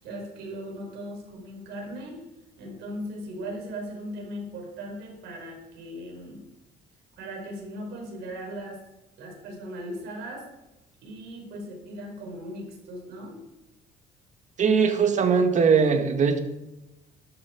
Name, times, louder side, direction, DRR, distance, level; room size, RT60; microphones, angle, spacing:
voice 1, 0.0-2.2 2.6-6.4 7.1-8.8 9.2-10.5 11.0-13.4, equal, 80° right, 1 dB, 5.3 m, -38 dB
voice 2, 14.6-16.4, right 5 dB, 45° right, 6 dB, 2.0 m, -20 dB
13.0 x 12.0 x 4.8 m, 0.98 s
cardioid pair, 110°, 17 cm